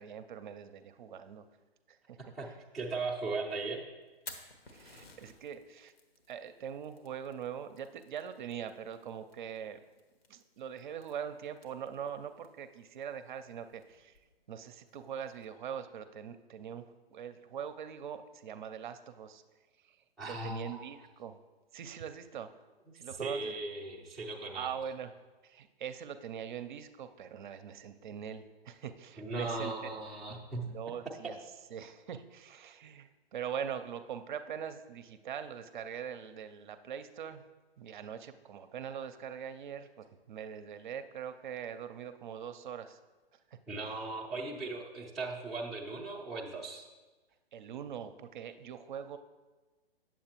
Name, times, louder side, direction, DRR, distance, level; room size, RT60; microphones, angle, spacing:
voice 1, 0.0-1.4 1.9-2.2 4.7-5.9 6.3-9.8 10.3-14.2 14.5-19.4 19.8-20.0 20.3-21.4 21.7-22.5 22.9-23.6 24.5-25.1 25.4-30.0 30.6-31.4 31.7-37.4 37.8-43.0 43.5-43.6 47.5-49.2, right 8 dB, 50° right, 9 dB, 0.5 m, -42 dB
voice 2, 2.7-3.8 20.2-20.8 23.2-24.7 29.2-30.7 43.7-46.8, right 3 dB, ahead, -6 dB, 0.4 m, -37 dB
Fire, 4.0-15.4, left 3 dB, 70° left, 1.3 m, -57 dB
8.7 x 7.3 x 2.9 m, 1.2 s
figure-of-eight pair, 125°, 30 cm